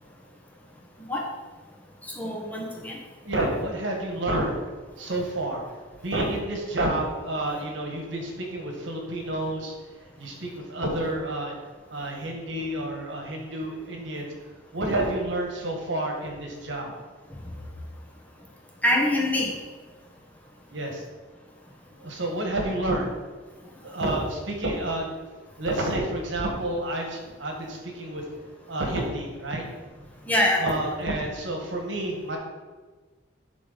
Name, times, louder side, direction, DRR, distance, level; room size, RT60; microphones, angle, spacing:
voice 1, 2.2-3.0 18.8-19.5 30.3-30.6, left 1 dB, 10° left, -2 dB, 1.1 m, -24 dB
voice 2, 3.2-4.6 5.0-5.6 6.0-9.7 10.2-11.6 11.9-14.3 14.7-16.9 20.7-21.0 21.9-23.1 23.8-25.1 25.6-28.3 28.7-29.6 30.6-32.4, right 1 dB, 75° right, 1 dB, 1.4 m, -29 dB
10.5 x 3.8 x 4.0 m, 1.4 s
head